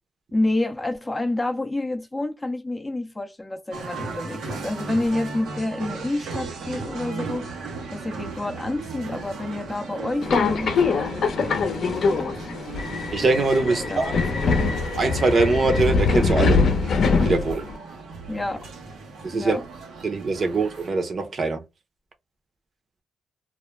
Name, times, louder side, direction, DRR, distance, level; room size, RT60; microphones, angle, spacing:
voice 1, 0.3-7.5 7.9-12.6 13.7-14.0 14.3-14.5 18.3-18.7 19.3-19.6, left 2 dB, 15° left, 0.4 m, -29 dB
sound 1, 3.7-20.9, right 4 dB, 85° right, 0.8 m, -37 dB
Subway metro underground, 10.2-17.8, left 4 dB, 60° left, 0.6 m, -23 dB
voice 2, 13.1-14.2 15.0-16.6 17.2-17.6 19.2-19.6 20.0-21.6, right 3 dB, 40° right, 0.7 m, -22 dB
2.3 x 2.2 x 3.1 m
cardioid pair, 100°, 0 cm